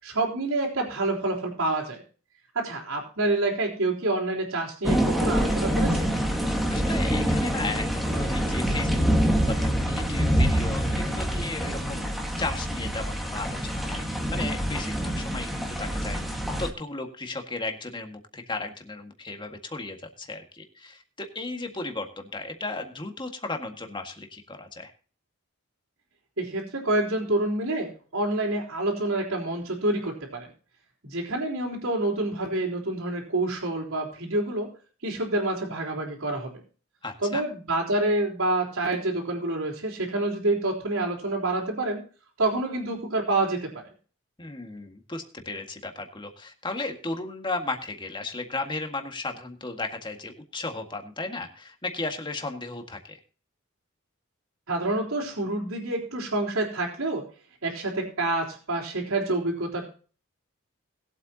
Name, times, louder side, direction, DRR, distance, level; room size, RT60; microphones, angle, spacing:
voice 1, 0.0-2.0 2.5-6.1 26.4-30.5 31.0-34.7 35.0-36.5 37.2-42.0 42.4-43.7 54.7-57.2 57.6-59.9, right 2 dB, 90° right, -8 dB, 3.8 m, -27 dB
sound 1, 4.8-16.7, equal, ahead, 1.6 m, -26 dB
voice 2, 6.7-12.1 12.4-24.9 37.0-37.4 44.4-53.2, left 3 dB, 25° left, 4 dB, 1.8 m, -35 dB
20.5 x 8.2 x 2.9 m, 0.38 s
head